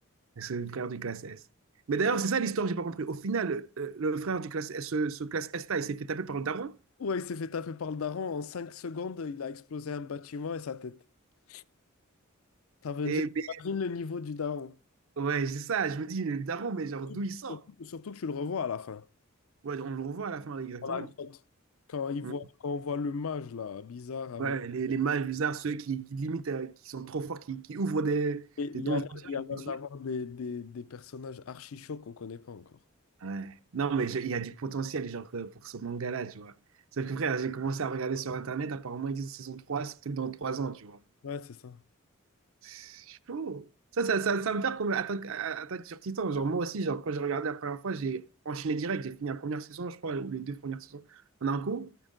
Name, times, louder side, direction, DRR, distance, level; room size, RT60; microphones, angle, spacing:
voice 1, 0.4-1.4 1.9-6.7 13.0-13.5 15.2-17.6 19.6-21.1 22.2-22.4 24.4-28.5 28.7-29.2 29.5-29.6 33.2-36.5 37.0-41.0 42.6-43.7 43.9-51.9, right 5 dB, 70° right, 0.6 m, -32 dB
voice 2, 7.0-11.0 11.5-11.6 12.8-13.3 13.6-14.8 17.1-17.2 17.5-19.0 20.8-21.4 21.9-24.5 28.6-32.8 41.2-41.8, left 5 dB, 75° left, 0.5 m, -36 dB
14.5 x 9.3 x 3.8 m
head